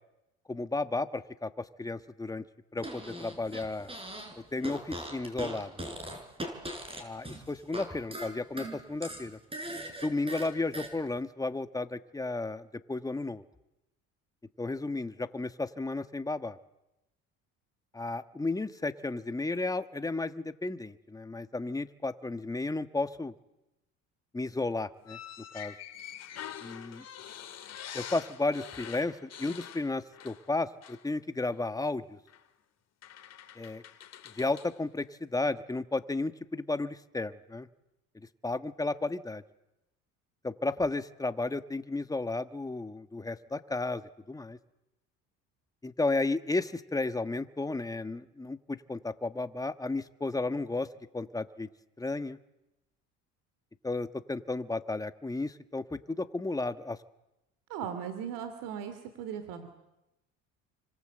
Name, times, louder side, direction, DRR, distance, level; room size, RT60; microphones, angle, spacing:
voice 1, 0.5-2.4 2.7-3.9 4.5-6.0 7.0-9.4 10.0-13.4 14.6-16.6 17.9-23.3 24.3-25.2 25.5-25.7 26.6-27.0 27.9-32.2 33.5-33.8 34.3-37.7 38.4-39.4 40.4-44.6 45.8-50.9 51.1-51.7 52.0-52.4 53.8-57.0, left 2 dB, 10° left, 11 dB, 1.3 m, -33 dB
Fart, 2.8-4.3 4.6-7.8 8.1-10.9, right 1 dB, 15° right, 6.4 m, -40 dB
sound 1, 25.1-30.5 30.8-31.1 32.3-32.4 33.0-34.8, left 10 dB, 50° left, 2.6 m, -45 dB
voice 2, 57.7-59.7, right 8 dB, 85° right, 9 dB, 3.0 m, -38 dB
29.5 x 25.0 x 7.8 m, 0.93 s
cardioid pair, 100°, 32 cm